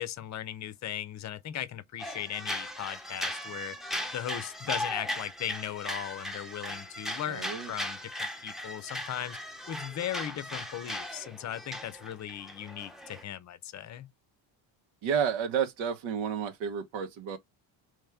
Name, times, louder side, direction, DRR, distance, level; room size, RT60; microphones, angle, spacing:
voice 1, 0.0-3.8 4.1-9.4 9.7-14.1, left 11 dB, 35° left, 0.6 m, -38 dB
sound 1, 2.0-13.2, left 1 dB, ahead, 0.7 m, -38 dB
voice 2, 7.3-7.7 15.0-17.4, right 7 dB, 80° right, 1.2 m, -31 dB
3.4 x 3.2 x 3.3 m
cardioid pair, 115°, 47 cm